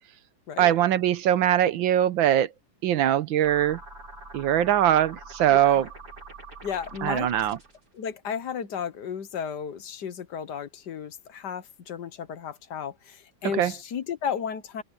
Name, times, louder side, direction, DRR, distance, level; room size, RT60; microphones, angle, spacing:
voice 1, 0.6-2.5 2.8-3.8 4.3-5.9 7.0-7.6 13.5-13.7, right 11 dB, 85° right, 1.6 m, -22 dB
sound 1, 3.4-7.8, right 3 dB, 55° right, 6.7 m, -44 dB
voice 2, 5.5-5.8 6.6-7.3 7.9-14.8, left 7 dB, 65° left, 1.6 m, -34 dB
omnidirectional pair, 2.1 m